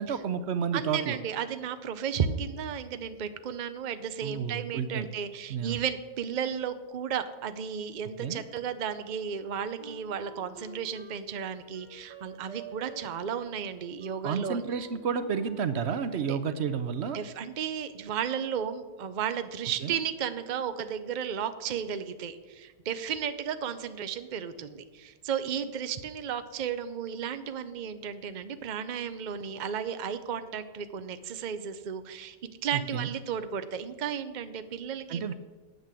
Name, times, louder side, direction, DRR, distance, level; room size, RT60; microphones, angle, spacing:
voice 1, 0.0-1.2 4.2-5.1 5.5-5.8 8.2-8.4 14.2-17.2 19.8-19.9 32.7-33.1 35.1-35.3, right 6 dB, 60° right, 11 dB, 0.7 m, -31 dB
voice 2, 0.7-14.6 16.1-16.4 17.1-32.4 32.6-35.3, right 8 dB, 80° right, 10 dB, 0.4 m, -34 dB
Wind instrument woodwind instrument, 9.8-16.1, right 4 dB, 30° right, 1.2 m, -48 dB
9.3 x 8.4 x 7.5 m, 1.3 s
omnidirectional pair, 1.7 m